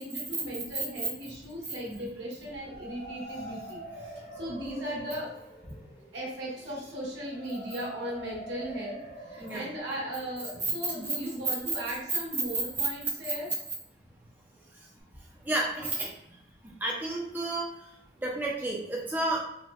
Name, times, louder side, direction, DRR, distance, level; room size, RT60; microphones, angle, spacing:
voice 1, 0.0-3.8 4.3-5.3 5.6-5.7 6.1-13.5, equal, 80° right, -5 dB, 1.2 m, -37 dB
sound 1, 2.4-12.3, right 1 dB, 75° left, 1.4 m, -46 dB
voice 2, 15.4-16.1 16.8-17.7 18.2-19.4, right 1 dB, 10° right, -3 dB, 0.4 m, -31 dB
4.1 x 2.1 x 2.3 m, 0.84 s
head